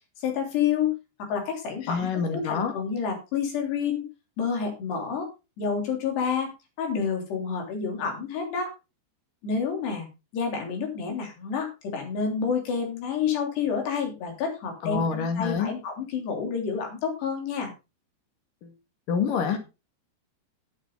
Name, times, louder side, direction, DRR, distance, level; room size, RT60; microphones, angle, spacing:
voice 1, 0.2-0.9 1.2-4.1 4.4-5.3 5.6-6.5 6.8-8.7 9.4-10.1 10.3-17.7, left 6 dB, 75° left, 2 dB, 5.5 m, -29 dB
voice 2, 1.9-2.7 14.8-15.7 18.6-18.7 19.1-19.6, left 6 dB, 55° left, 6 dB, 3.4 m, -27 dB
11.0 x 10.5 x 3.9 m, 0.28 s
omnidirectional pair, 4.9 m